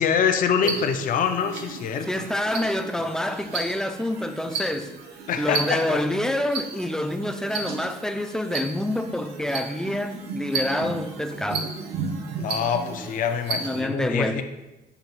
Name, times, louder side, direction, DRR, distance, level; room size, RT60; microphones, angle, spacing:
voice 1, 0.0-2.3 5.3-6.0 12.4-14.4, left 7 dB, 55° left, 0.6 m, -25 dB
sound 1, 0.6-13.8, right 4 dB, 75° right, 0.9 m, -34 dB
voice 2, 2.1-4.9 5.4-11.7 13.6-14.4, left 1 dB, 5° left, 0.4 m, -27 dB
7.2 x 3.0 x 4.4 m
cardioid pair, 110°, 17 cm